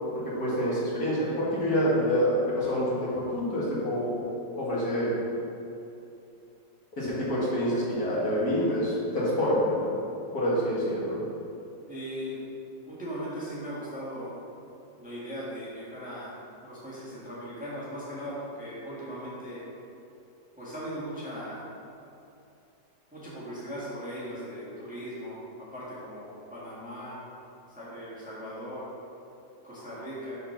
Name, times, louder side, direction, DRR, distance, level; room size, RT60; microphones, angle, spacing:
voice 1, 0.1-4.2 4.5-5.2 7.0-9.9 10.3-11.2, equal, 55° left, -8 dB, 2.3 m, -27 dB
voice 2, 11.9-12.5 12.9-14.3 15.0-16.4 16.6-19.6 20.6-21.6 23.1-27.2 27.8-28.8 29.6-30.4, equal, 5° right, -9 dB, 1.5 m, -38 dB
6.6 x 4.2 x 5.7 m, 2.7 s
omnidirectional pair, 1.9 m